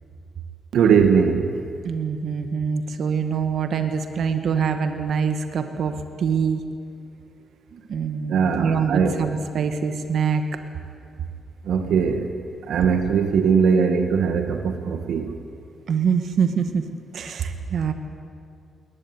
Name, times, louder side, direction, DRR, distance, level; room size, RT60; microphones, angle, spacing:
voice 1, 0.7-1.5 8.3-9.2 11.7-12.3 12.7-15.3, right 6 dB, 85° right, 6 dB, 1.6 m, -20 dB
voice 2, 1.8-6.6 7.7-10.4 15.9-16.9 17.1-17.9, right 6 dB, 70° right, 7 dB, 1.7 m, -24 dB
21.5 x 19.5 x 9.6 m, 2.4 s
cardioid pair, 105°, 0 cm